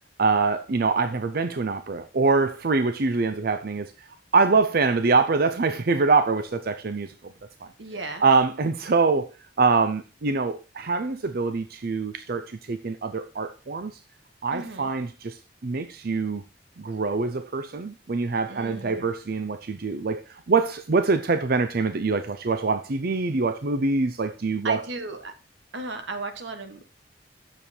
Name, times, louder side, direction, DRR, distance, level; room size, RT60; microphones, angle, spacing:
voice 1, 0.2-3.9 4.3-7.1 8.2-9.3 9.6-13.9 14.4-16.4 16.8-24.8, right 4 dB, 55° right, 0.6 m, -24 dB
voice 2, 7.8-8.2 14.5-14.9 18.5-19.1 24.6-25.3 25.7-26.8, right 3 dB, 90° right, 1.6 m, -35 dB
8.8 x 7.1 x 4.3 m
head